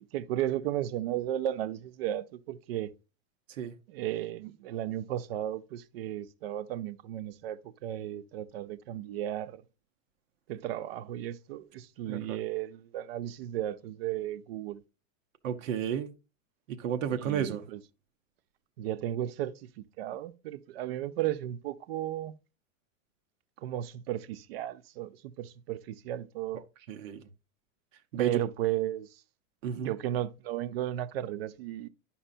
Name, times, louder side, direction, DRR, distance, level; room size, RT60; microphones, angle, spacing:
voice 1, 0.0-2.9 3.9-9.6 10.5-14.8 17.2-17.8 18.8-19.7 20.0-22.3 23.6-26.6 28.2-29.2 29.8-31.9, right 12 dB, 50° right, 0.5 m, -34 dB
voice 2, 12.0-12.4 15.4-16.1 16.7-17.6 26.9-27.3 28.1-28.4 29.6-29.9, right 8 dB, 80° right, 0.9 m, -32 dB
10.0 x 5.5 x 2.5 m
supercardioid pair, 175°, 39 cm